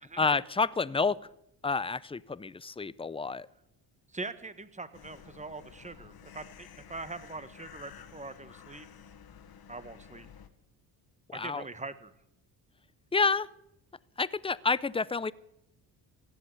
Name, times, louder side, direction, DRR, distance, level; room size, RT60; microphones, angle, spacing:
voice 1, 0.2-1.2 1.6-3.5 11.3-11.6 13.1-13.5 14.2-15.3, left 4 dB, 15° left, 19 dB, 0.6 m, -29 dB
voice 2, 4.1-8.9 9.7-10.3 11.3-12.1, right 3 dB, 15° right, 13 dB, 1.4 m, -42 dB
sound 1, 4.9-10.5, left 8 dB, 55° left, 1.7 m, -52 dB
16.5 x 8.1 x 9.6 m, 0.81 s
supercardioid pair, 70°, 43 cm